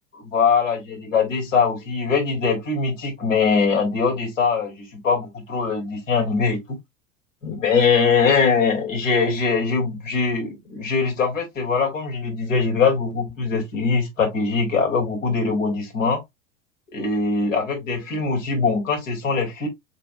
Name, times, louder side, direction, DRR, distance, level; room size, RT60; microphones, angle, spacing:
voice 1, 0.2-6.8 7.4-16.2 16.9-19.7, left 5 dB, 85° left, 3.0 m, -22 dB
7.4 x 2.7 x 2.4 m
hypercardioid pair, 90°, 38 cm